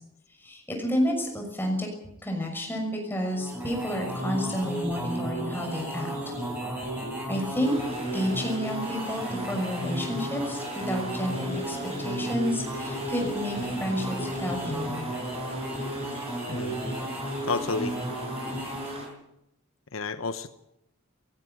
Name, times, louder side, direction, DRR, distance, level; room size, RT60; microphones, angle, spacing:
voice 1, 0.4-1.9 2.2-6.1 6.9-7.0 7.3-7.8 8.1-15.0, equal, 10° left, 1 dB, 6.2 m, -30 dB
sound 1, 3.3-19.1, right 1 dB, 10° right, 7.2 m, -33 dB
sound 2, 7.6-19.1, right 1 dB, 30° right, 6.5 m, -44 dB
voice 2, 16.5-16.9 17.5-18.0 19.9-20.5, left 4 dB, 75° left, 10 dB, 1.0 m, -31 dB
18.0 x 15.5 x 9.4 m, 0.85 s
head